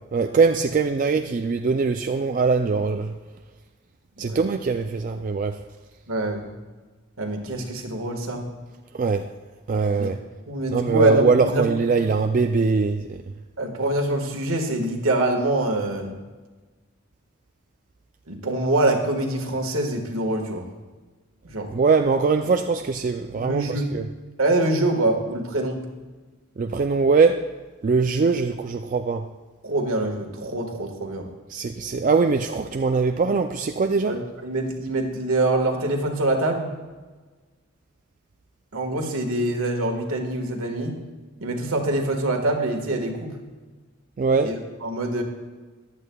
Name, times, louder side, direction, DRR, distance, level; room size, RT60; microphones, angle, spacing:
voice 1, 0.1-3.1 4.2-5.6 9.0-9.2 9.7-10.2 10.7-13.2 21.7-23.6 23.9-24.1 26.6-27.5 27.8-29.3 31.5-34.1 44.2-44.5, right 4 dB, 35° right, 0.3 m, -22 dB
voice 2, 6.1-6.5 7.2-8.4 9.9-10.1 10.5-11.7 13.6-16.2 18.3-20.7 21.4-21.7 23.3-23.9 24.4-25.8 29.6-31.3 34.0-36.7 38.7-41.0 41.4-43.3 44.4-45.2, right 1 dB, 75° right, 1.6 m, -25 dB
14.5 x 10.5 x 2.3 m
head